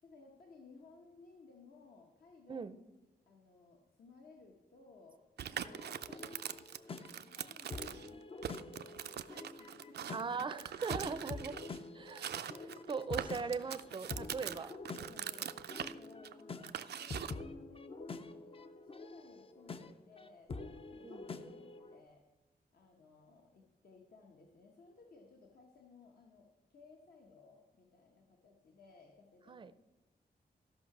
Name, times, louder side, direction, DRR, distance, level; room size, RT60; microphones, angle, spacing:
voice 1, 0.0-2.7 3.3-6.4 7.1-10.1 14.8-22.3 22.7-29.7, left 4 dB, 65° left, 1 dB, 1.2 m, -60 dB
sound 1, 5.4-8.1 8.4-11.8 12.1-17.4, right 9 dB, 90° right, 0.5 m, -43 dB
sound 2, 5.6-22.0, left 3 dB, 35° left, 0.5 m, -47 dB
voice 2, 10.1-11.6 11.9-12.3 12.6-14.7 21.0-21.5 29.5-29.7, right 5 dB, 30° right, 13 dB, 0.5 m, -40 dB
14.0 x 5.9 x 6.0 m, 1.1 s
wide cardioid pair, 175°, 17 cm